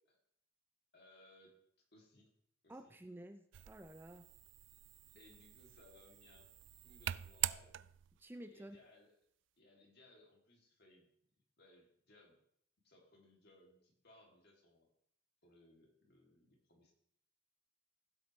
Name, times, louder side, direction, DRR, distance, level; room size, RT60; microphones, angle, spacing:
voice 1, 0.9-1.6 1.9-2.3 2.6-2.9 5.1-6.5 6.8-7.8 8.4-9.1 9.6-11.1 11.6-12.4 12.8-14.9 15.4-16.9, left 1 dB, 60° left, 0 dB, 2.7 m, -65 dB
voice 2, 2.7-4.3 8.2-8.8, right 1 dB, 10° right, 7 dB, 0.5 m, -52 dB
sound 1, 3.5-8.2, right 14 dB, 70° right, 0.3 m, -44 dB
16.5 x 7.8 x 3.2 m, 0.70 s
head